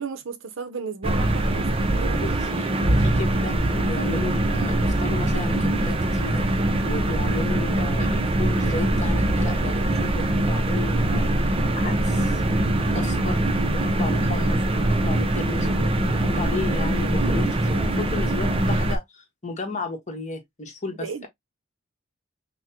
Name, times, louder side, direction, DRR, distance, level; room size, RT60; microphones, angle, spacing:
voice 1, 0.0-2.3 20.9-21.3, right 5 dB, 65° right, 0.7 m, -34 dB
sound 1, 1.0-19.0, right 1 dB, 25° right, 0.6 m, -23 dB
voice 2, 2.1-6.5 6.8-11.3 11.7-12.4 12.9-13.5 13.7-21.3, left 2 dB, 35° left, 1.3 m, -34 dB
5.9 x 2.2 x 2.8 m
head